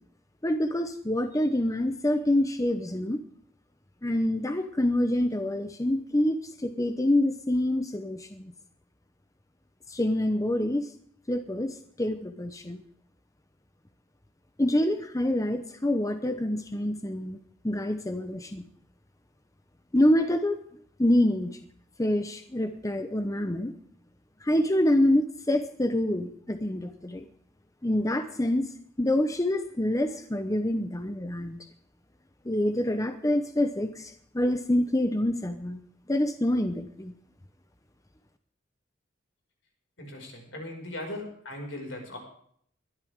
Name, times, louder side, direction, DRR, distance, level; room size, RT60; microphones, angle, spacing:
voice 1, 0.4-3.2 4.0-8.5 9.9-10.9 11.3-12.8 14.6-17.4 17.6-18.6 19.9-20.6 21.0-21.6 22.0-23.7 24.4-27.3 27.8-28.7 29.0-31.7 32.4-35.8 36.1-37.1, left 1 dB, 15° left, 8 dB, 0.9 m, -26 dB
voice 2, 40.0-42.2, left 1 dB, 75° left, 1 dB, 5.8 m, -38 dB
21.5 x 12.5 x 3.7 m, 0.63 s
head